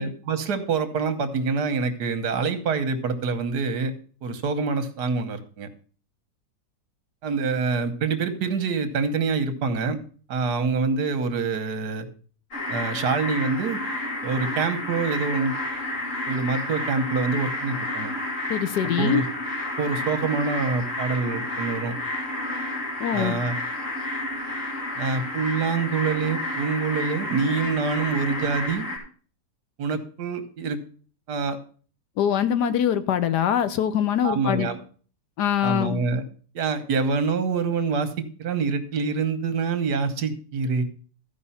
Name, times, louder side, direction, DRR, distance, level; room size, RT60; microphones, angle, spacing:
voice 1, 0.0-3.9 4.2-5.7 7.2-10.0 10.3-12.1 12.7-13.8 14.2-15.5 16.3-18.1 19.0-19.3 19.8-22.0 23.1-23.6 25.0-28.9 29.8-30.8 31.3-31.6 34.2-34.8 35.6-36.2 36.6-38.1 38.4-40.8, right 4 dB, 75° right, 9 dB, 1.6 m, -26 dB
sound 1, 12.5-29.0, left 1 dB, 45° left, 3.3 m, -31 dB
voice 2, 18.5-19.2 23.0-23.3 32.2-34.7 35.4-36.0, left 9 dB, 80° left, 12 dB, 1.4 m, -23 dB
14.0 x 5.3 x 5.6 m, 0.42 s
omnidirectional pair, 1.8 m